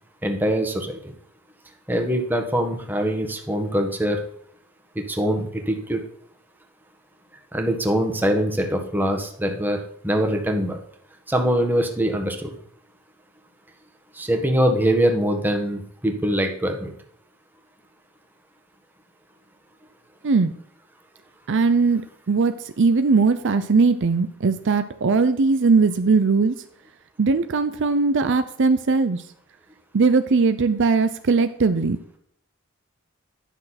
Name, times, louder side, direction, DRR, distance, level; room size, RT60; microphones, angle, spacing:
voice 1, 0.2-1.1 1.9-4.2 4.9-6.0 7.5-10.8 11.3-12.6 14.2-16.9, equal, 10° right, 3 dB, 1.4 m, -23 dB
voice 2, 21.5-26.5 27.2-29.2 29.9-32.0, right 4 dB, 60° right, 10 dB, 0.5 m, -19 dB
10.0 x 6.4 x 4.2 m, 0.67 s
head